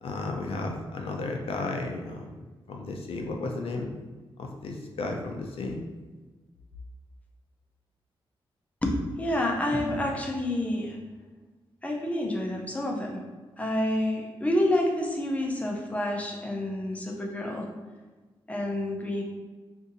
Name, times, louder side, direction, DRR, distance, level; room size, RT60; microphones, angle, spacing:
voice 1, 0.0-2.4 2.7-3.9 4.4-5.8, left 3 dB, 85° left, 2 dB, 0.5 m, -33 dB
voice 2, 8.8-11.0 11.8-13.2 13.6-17.7 18.5-19.2, left 1 dB, 15° left, 0 dB, 0.5 m, -28 dB
2.6 x 2.6 x 3.9 m, 1.3 s
wide cardioid pair, 160°, 10 cm